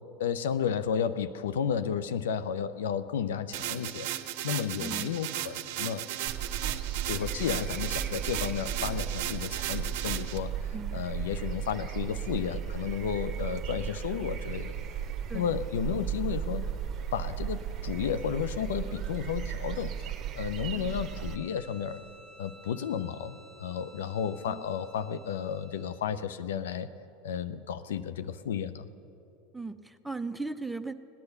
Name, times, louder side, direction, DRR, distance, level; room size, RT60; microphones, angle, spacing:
voice 1, 0.2-4.1 4.4-6.0 7.1-10.5 10.9-14.7 15.3-16.7 17.1-22.0 22.4-26.9 27.2-28.9, left 8 dB, 80° left, 12 dB, 0.5 m, -32 dB
sound 1, 3.5-10.4, right 13 dB, 65° right, 0.7 m, -36 dB
voice 2, 4.8-5.1 10.7-11.1 15.3-15.6 20.7-21.1 24.5-24.6 29.5-30.9, right 3 dB, 5° right, 9 dB, 0.6 m, -38 dB
sound 2, 6.3-21.4, right 9 dB, 40° right, 0.9 m, -35 dB
Bowed string instrument, 20.9-26.1, right 1 dB, 35° left, 2.0 m, -55 dB
17.0 x 9.8 x 6.7 m, 2.9 s
hypercardioid pair, 85°, 0 cm